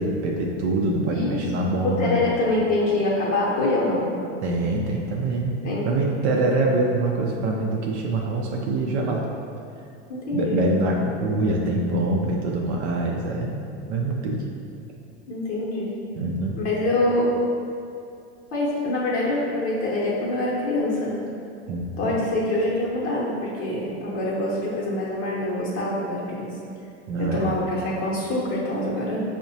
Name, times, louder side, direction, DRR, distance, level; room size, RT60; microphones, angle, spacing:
voice 1, 0.0-2.2 4.4-5.6 5.8-9.3 10.3-14.4 16.1-16.6 21.7-22.1 27.1-27.5, right 2 dB, 75° right, -1 dB, 0.5 m, -24 dB
voice 2, 1.8-4.1 5.6-5.9 10.1-10.6 15.3-15.9 16.5-17.4 18.5-21.2 22.0-26.5 27.2-29.2, left 2 dB, 40° left, -6 dB, 0.7 m, -25 dB
4.7 x 2.1 x 2.7 m, 2.5 s
supercardioid pair, 125°, 34 cm